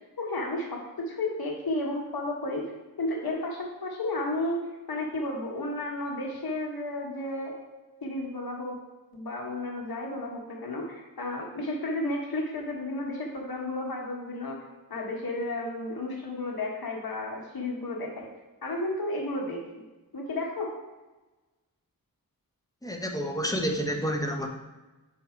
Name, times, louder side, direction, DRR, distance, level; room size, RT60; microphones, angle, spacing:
voice 1, 0.2-2.6 3.0-7.6 8.0-8.8 9.1-14.6 14.9-18.3 18.6-19.8 20.1-20.7, left 2 dB, 80° left, -1 dB, 1.3 m, -32 dB
voice 2, 22.8-24.5, equal, 10° left, 2 dB, 0.8 m, -29 dB
5.8 x 4.2 x 4.4 m, 1.1 s
wide cardioid pair, 90°, 36 cm